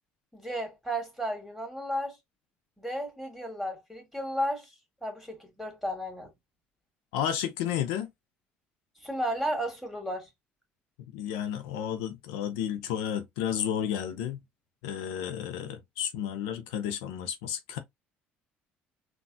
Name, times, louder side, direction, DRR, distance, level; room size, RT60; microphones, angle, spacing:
voice 1, 0.3-2.2 2.8-4.7 5.0-6.3 9.0-10.3, equal, ahead, 1.9 m, -33 dB
voice 2, 7.1-8.1 11.1-14.4 14.8-17.8, left 9 dB, 80° left, 0.5 m, -32 dB
3.9 x 2.3 x 2.6 m
hypercardioid pair, 70°, 5 cm